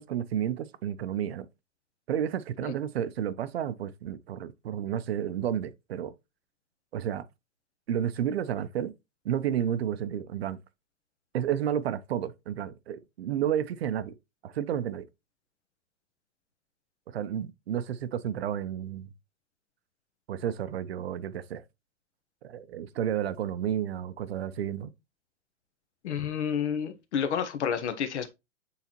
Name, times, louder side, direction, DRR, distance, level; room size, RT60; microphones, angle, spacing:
voice 1, 0.0-1.5 2.1-6.1 6.9-7.2 7.9-8.9 9.2-10.6 11.3-14.1 14.4-15.1 17.1-19.1 20.3-21.6 22.4-24.9, right 10 dB, 55° right, 0.6 m, -31 dB
voice 2, 26.0-28.3, left 7 dB, 60° left, 1.2 m, -30 dB
8.2 x 4.0 x 2.9 m
hypercardioid pair, 175°, 38 cm